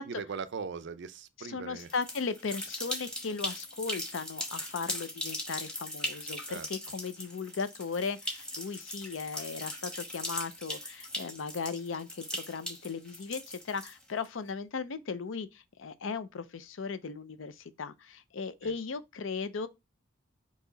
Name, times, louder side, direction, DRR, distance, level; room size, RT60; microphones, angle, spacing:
voice 1, 0.0-1.9 6.5-6.7 18.6-18.7, right 5 dB, 60° right, 0.4 m, -40 dB
voice 2, 1.4-19.7, left 5 dB, 70° left, 0.5 m, -37 dB
sound 1, 1.8-14.2, equal, 5° left, 1.0 m, -39 dB
4.6 x 2.8 x 3.9 m
head